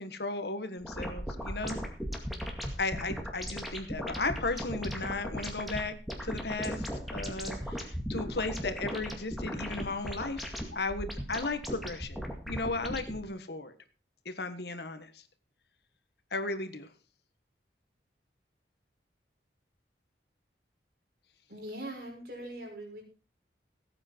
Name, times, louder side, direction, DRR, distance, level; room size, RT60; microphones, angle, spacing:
voice 1, 0.0-1.8 2.8-5.9 6.2-12.2 12.5-13.7 14.2-15.2 16.3-16.9, left 3 dB, 70° left, 9 dB, 1.6 m, -35 dB
sound 1, 0.8-13.2, equal, ahead, 2.2 m, -37 dB
voice 2, 21.5-23.0, right 1 dB, 55° right, 1 dB, 6.0 m, -41 dB
17.5 x 8.9 x 4.6 m, 0.36 s
head